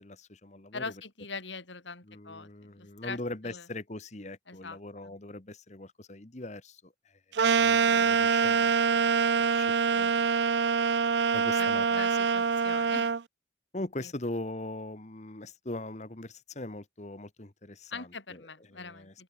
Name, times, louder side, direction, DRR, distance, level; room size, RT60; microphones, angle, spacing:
voice 1, 0.0-0.9 2.0-10.8 11.3-12.0 13.7-19.2, left 2 dB, 40° left, 1.5 m, -41 dB
voice 2, 0.7-3.2 3.4-3.6 4.5-4.8 5.0-5.2 11.6-13.1 14.0-14.1 17.9-19.2, left 4 dB, 80° left, 5.0 m, -42 dB
sound 1, 7.4-13.2, right 6 dB, 65° right, 0.5 m, -25 dB
open air
head